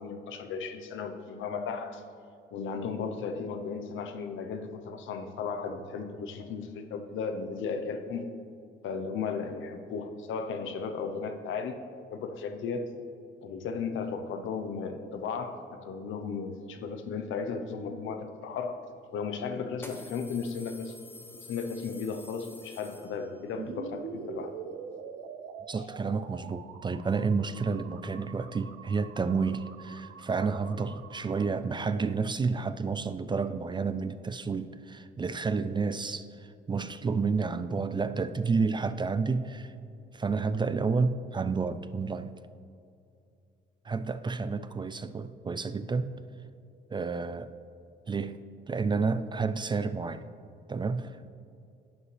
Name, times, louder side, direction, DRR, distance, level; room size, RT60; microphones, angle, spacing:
voice 1, 0.0-2.0 2.5-8.3 8.8-11.8 12.1-12.9 13.4-18.8 19.1-20.9 21.5-24.6, left 5 dB, 80° left, 7 dB, 0.8 m, -35 dB
sound 1, 18.6-18.7 19.7-23.5, left 2 dB, 10° left, 1.2 m, -49 dB
sound 2, 23.6-31.5, right 6 dB, 90° right, 0.6 m, -44 dB
voice 2, 25.7-39.7 40.1-42.3 43.8-46.1 46.9-47.5 48.1-50.2 50.7-51.3, right 4 dB, 25° right, 12 dB, 0.3 m, -30 dB
11.0 x 7.4 x 3.3 m, 2.5 s
cardioid pair, 90°, 20 cm